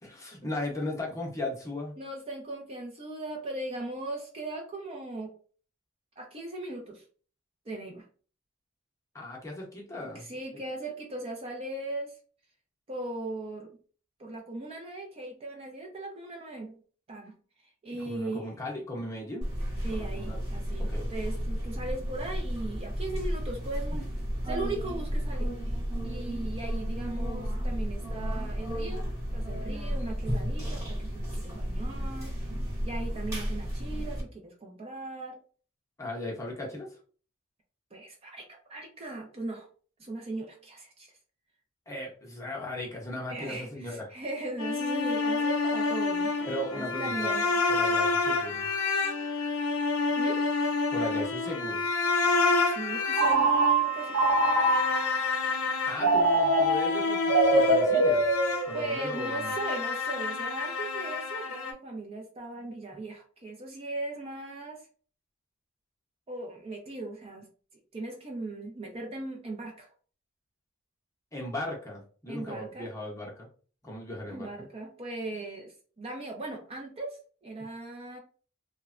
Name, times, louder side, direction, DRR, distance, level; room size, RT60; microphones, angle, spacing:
voice 1, 0.0-2.0 9.1-10.2 10.5-10.6 17.9-19.4 19.9-20.4 20.9-21.1 36.0-37.0 41.9-44.1 46.4-47.4 47.7-48.7 50.9-51.8 55.9-58.3 58.7-59.5 71.3-73.5 73.8-74.5, left 1 dB, 15° left, -2 dB, 0.7 m, -37 dB
voice 2, 2.0-5.3 6.2-7.0 7.7-8.0 10.0-12.1 12.9-13.8 14.2-16.8 17.1-17.4 17.8-18.5 19.8-24.1 24.4-25.5 26.0-32.3 32.8-35.4 37.9-39.7 40.0-41.1 43.3-47.6 50.1-50.4 52.7-54.8 58.7-64.8 66.3-67.5 67.9-69.9 72.3-72.9 74.3-78.2, right 2 dB, 30° right, 1 dB, 0.5 m, -38 dB
sound 1, 19.4-34.2, equal, 15° right, 1.0 m, -33 dB
sound 2, 44.6-61.7, left 3 dB, 90° left, 0.5 m, -29 dB
Telephone, 53.1-55.1 56.0-59.0, right 2 dB, 75° right, 0.6 m, -24 dB
3.0 x 2.1 x 2.4 m, 0.41 s
head